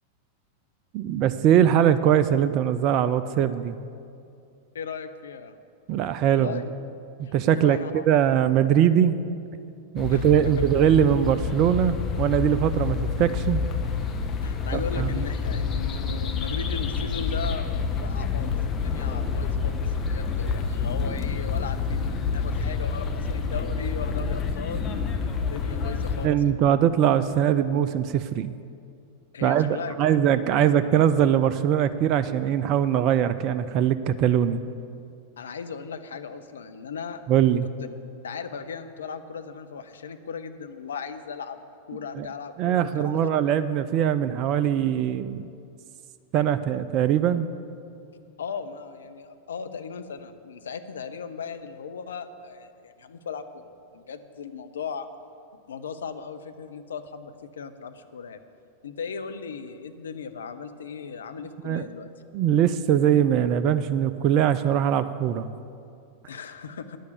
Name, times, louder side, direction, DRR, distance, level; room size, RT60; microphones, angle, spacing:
voice 1, 0.9-3.8 5.9-6.7 7.3-9.2 9.9-13.6 14.7-15.2 26.2-28.5 29.4-34.6 37.3-37.7 42.2-42.3 42.6-45.5 46.3-47.5 61.6-61.9 62.3-65.5, right 9 dB, 40° right, 12 dB, 0.3 m, -22 dB
voice 2, 4.7-5.5 6.2-6.8 7.2-8.2 10.1-10.5 14.4-26.8 29.3-30.1 30.6-30.7 35.4-37.2 38.2-43.3 48.4-55.1 55.7-58.4 58.8-62.1 66.3-67.0, left 6 dB, 65° left, 8 dB, 0.6 m, -37 dB
sound 1, 10.0-26.3, left 5 dB, 25° left, 0.8 m, -28 dB
9.7 x 6.4 x 8.1 m, 2.5 s
figure-of-eight pair, 90°, 0 cm